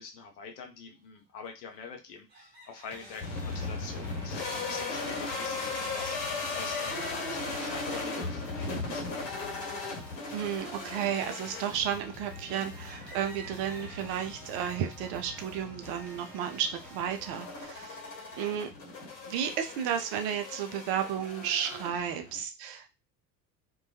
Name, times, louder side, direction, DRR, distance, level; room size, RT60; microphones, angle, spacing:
voice 1, 0.0-9.3, left 5 dB, 70° left, 4 dB, 0.7 m, -45 dB
sound 1, 1.1-1.2 2.3-5.1 6.4-8.2 8.6-10.6 11.2-11.3 12.0-12.1 12.5-14.1, right 2 dB, 20° right, 1.0 m, -51 dB
sound 2, 2.9-17.7, equal, ahead, 0.5 m, -51 dB
sound 3, 3.2-22.4, left 3 dB, 55° left, 1.1 m, -38 dB
voice 2, 10.3-18.0 18.4-18.7 19.3-22.9, right 9 dB, 50° right, 6 dB, 0.5 m, -33 dB
2.3 x 2.2 x 2.6 m, 0.27 s
figure-of-eight pair, 60°, 50 cm